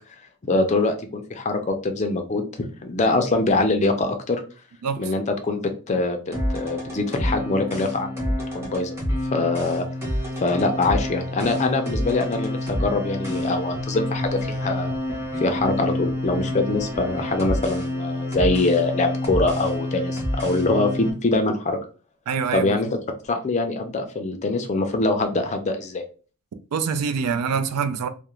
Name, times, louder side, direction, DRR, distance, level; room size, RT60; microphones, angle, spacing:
voice 1, 0.4-4.4 5.0-6.2 6.5-8.9 9.3-9.8 10.4-14.9 15.4-21.8 22.5-22.9 23.3-26.0, left 2 dB, 30° left, 0.4 m, -23 dB
voice 2, 4.8-5.1 22.3-22.7 26.7-28.1, right 6 dB, 90° right, 0.4 m, -25 dB
sound 1, 6.3-21.1, left 1 dB, 10° right, 0.8 m, -28 dB
2.4 x 2.0 x 2.9 m
head